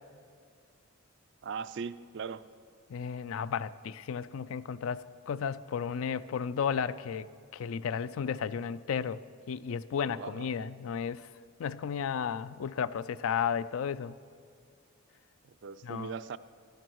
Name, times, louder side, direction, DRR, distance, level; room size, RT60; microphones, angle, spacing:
voice 1, 1.4-2.4 10.1-10.5 15.4-16.4, right 6 dB, 55° right, 14 dB, 0.4 m, -39 dB
voice 2, 2.9-7.3 7.5-9.2 9.5-11.3 11.6-14.1 15.8-16.1, left 7 dB, 70° left, 16 dB, 0.4 m, -33 dB
17.0 x 12.0 x 4.7 m, 2.1 s
head